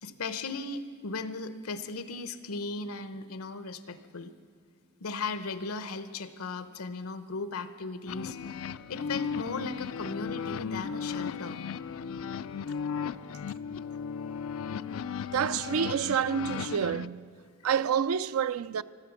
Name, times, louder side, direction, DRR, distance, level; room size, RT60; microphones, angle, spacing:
voice 1, 0.0-4.3 5.0-8.4 8.9-11.6, left 3 dB, 90° left, 0.8 m, -37 dB
sound 1, 8.1-17.1, left 6 dB, 65° left, 0.3 m, -36 dB
voice 2, 15.3-17.3 17.6-18.8, right 8 dB, 80° right, 0.4 m, -28 dB
16.0 x 12.5 x 7.2 m
head